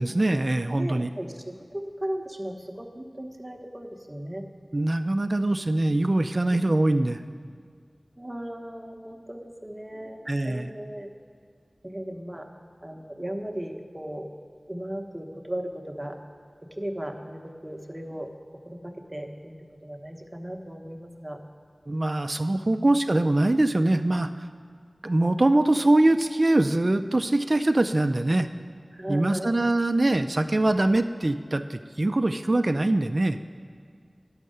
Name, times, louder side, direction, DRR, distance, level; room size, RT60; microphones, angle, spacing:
voice 1, 0.0-1.1 4.7-7.2 10.3-10.7 21.9-24.5 25.0-28.5 29.1-33.4, right 2 dB, 50° right, 8 dB, 0.3 m, -23 dB
voice 2, 0.8-4.4 6.5-6.7 8.2-11.1 11.8-12.5 12.8-14.3 14.7-16.2 16.7-18.3 18.6-19.6 19.8-21.4 22.6-23.0 28.9-29.5, right 1 dB, 20° right, 3 dB, 1.0 m, -36 dB
11.0 x 6.4 x 6.6 m, 2.1 s
wide cardioid pair, 50°, 0 cm